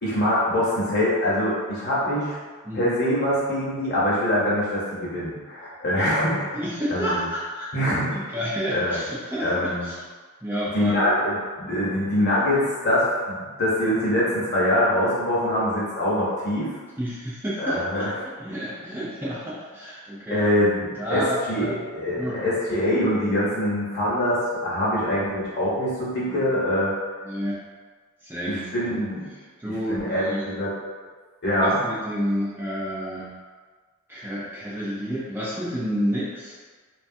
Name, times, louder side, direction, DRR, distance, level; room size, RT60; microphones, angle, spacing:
voice 1, 0.0-2.4 2.7-6.5 6.9-7.2 7.7-8.1 8.7-9.0 9.4-9.9 10.7-16.7 17.6-18.1 20.3-26.9 28.4-29.3 29.9-30.7 31.4-31.8, left 1 dB, 50° left, -7 dB, 0.9 m, -24 dB
voice 2, 6.5-10.0 10.4-11.0 17.0-20.5 21.0-21.9 22.2-22.4 26.3-26.4 27.2-27.6 28.2-29.0 29.3-30.5 31.6-33.4 34.1-36.6, equal, 10° right, -8 dB, 0.4 m, -30 dB
3.1 x 2.3 x 2.6 m, 1.5 s
head